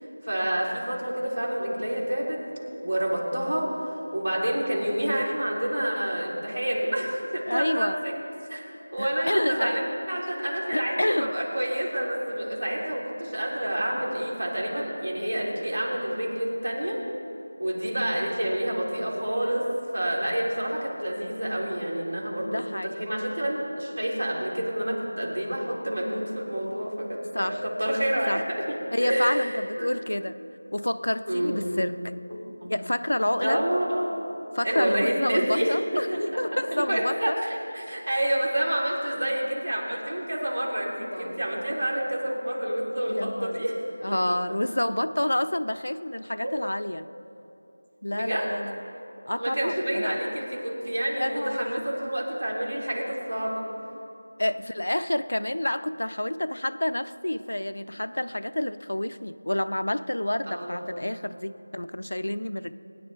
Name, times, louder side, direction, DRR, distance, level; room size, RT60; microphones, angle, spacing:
voice 1, 0.2-2.4 2.8-8.6 8.9-17.0 17.6-19.7 19.9-29.5 29.8-29.9 31.3-31.8 32.3-32.7 33.4-34.1 34.6-36.4 36.7-43.8 44.7-44.8 46.4-46.5 48.1-48.5 49.4-53.7 60.5-60.9, right 1 dB, 80° right, -3 dB, 3.5 m, -28 dB
voice 2, 7.5-8.0 9.0-9.8 10.7-11.3 22.4-23.0 27.3-27.6 28.3-28.4 28.9-30.3 30.7-32.0 32.6-33.6 34.5-37.4 41.0-41.4 43.1-43.7 44.0-47.1 48.0-48.7 49.3-50.2 51.1-51.8 54.4-62.7, left 1 dB, 80° left, 13 dB, 0.6 m, -29 dB
21.5 x 10.0 x 3.4 m, 2.8 s
figure-of-eight pair, 175°, 0 cm